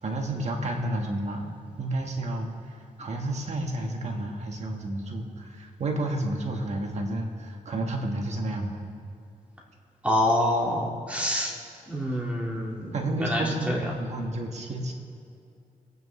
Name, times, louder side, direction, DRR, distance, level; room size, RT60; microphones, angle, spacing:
voice 1, 0.0-8.8 12.9-14.9, right 1 dB, 50° right, 1 dB, 1.6 m, -31 dB
voice 2, 10.0-11.5 11.9-13.9, left 1 dB, 10° right, -3 dB, 2.0 m, -27 dB
26.5 x 9.5 x 3.3 m, 2.5 s
wide cardioid pair, 130°, 14 cm